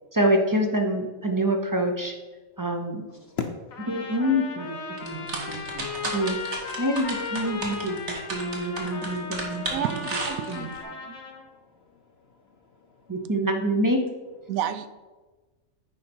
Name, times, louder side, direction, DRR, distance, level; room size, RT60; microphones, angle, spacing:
voice 1, 0.1-2.1 2.6-3.1 3.9-6.4 6.8-9.8 10.5-10.7 13.1-14.1, equal, 25° right, 0.4 m, -26 dB
voice 2, 3.1-3.4 4.5-4.7 4.9-6.5 11.0-13.3, left 6 dB, 55° left, 0.8 m, -43 dB
Trumpet, 3.7-11.4, left 5 dB, 75° left, 1.5 m, -36 dB
sound 1, 5.0-10.8, right 2 dB, 55° right, 1.7 m, -33 dB
voice 3, 9.7-11.1 14.5-14.9, right 9 dB, 80° right, 1.0 m, -31 dB
9.2 x 5.2 x 4.4 m
omnidirectional pair, 1.5 m